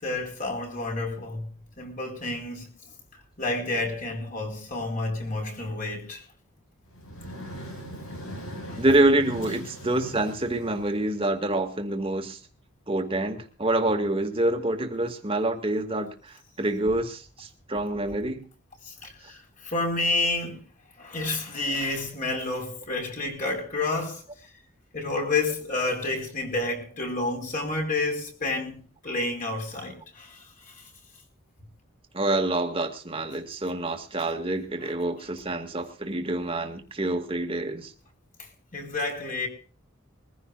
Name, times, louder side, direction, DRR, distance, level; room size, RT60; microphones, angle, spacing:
voice 1, 0.0-1.5 1.8-2.7 3.4-6.2 8.7-8.8 18.8-20.6 21.0-24.2 24.9-30.8 38.7-39.5, left 2 dB, 40° left, 4.8 m, -30 dB
sound 1, 6.9-11.4, equal, 80° left, 8.0 m, -40 dB
voice 2, 8.8-12.4 12.9-18.5 32.1-37.9, right 2 dB, 25° right, 2.1 m, -27 dB
23.0 x 15.5 x 2.5 m
head